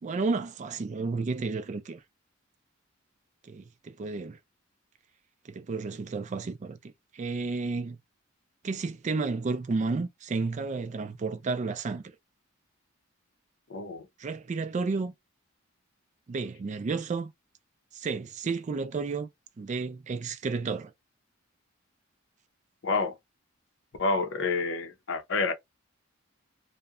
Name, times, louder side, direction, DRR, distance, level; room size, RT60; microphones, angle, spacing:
voice 1, 0.0-2.0 3.4-4.4 5.4-8.0 8.6-12.0 14.2-15.1 16.3-17.3 17.9-19.3 19.6-20.9, right 4 dB, 35° right, 0.3 m, -32 dB
voice 2, 13.7-14.0 22.8-23.1 24.0-25.5, left 3 dB, 65° left, 0.6 m, -28 dB
2.7 x 2.1 x 2.3 m
head